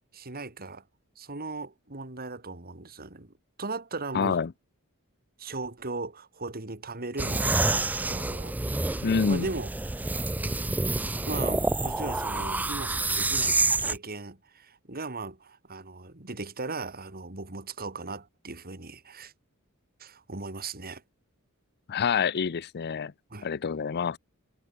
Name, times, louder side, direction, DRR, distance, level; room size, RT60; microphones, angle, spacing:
voice 1, 0.1-0.8 1.2-4.4 5.4-9.7 11.3-19.3 20.0-21.0 23.3-23.5, right 3 dB, 45° right, 3.2 m, -38 dB
voice 2, 4.1-4.5 9.0-9.5 21.9-23.1 23.4-24.2, left 6 dB, 50° left, 0.5 m, -27 dB
sound 1, 7.2-14.0, right 2 dB, 5° right, 0.3 m, -28 dB
head